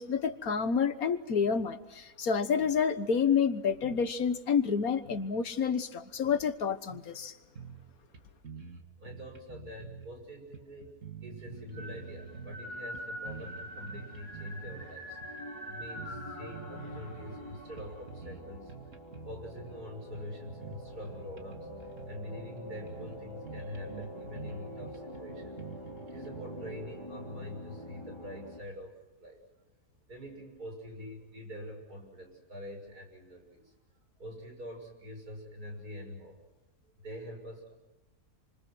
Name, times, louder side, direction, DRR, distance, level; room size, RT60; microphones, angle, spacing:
voice 1, 0.0-7.3, left 6 dB, 70° left, 11 dB, 1.8 m, -29 dB
sound 1, 7.6-7.9 8.1-8.2 8.4-10.1 10.5-12.6 12.9-14.9 15.2-15.4 15.8-17.4 17.8-18.4 18.7-19.8 20.1-22.2 22.6-22.7 22.9-23.2 23.5-26.8, right 5 dB, 55° right, 2.3 m, -47 dB
voice 2, 9.0-10.9 11.2-15.2 15.6-18.9 19.2-28.9 29.2-29.4 30.1-33.7 34.2-36.4 36.8-37.7, left 1 dB, 80° right, 2 dB, 7.3 m, -45 dB
sound 2, 11.5-28.6, equal, 15° left, 4.0 m, -45 dB
28.5 x 25.5 x 6.2 m, 1.0 s
omnidirectional pair, 1.6 m